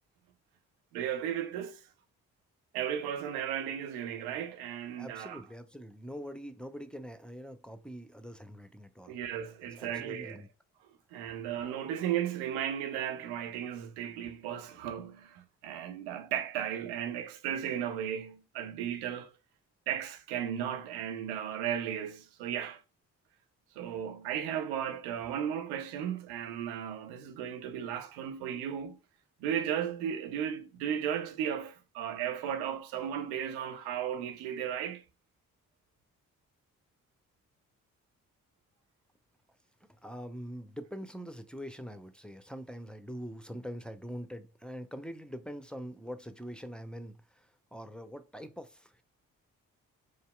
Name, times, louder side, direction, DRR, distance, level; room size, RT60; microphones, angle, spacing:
voice 1, 0.9-1.8 2.7-5.4 9.1-10.4 11.1-19.3 19.9-22.8 23.8-29.0 29.4-35.0, right 9 dB, 85° right, 0.7 m, -35 dB
voice 2, 5.0-9.2 9.8-10.5 39.8-49.0, equal, ahead, 0.6 m, -44 dB
4.8 x 2.7 x 2.2 m
hypercardioid pair, 45°, 38 cm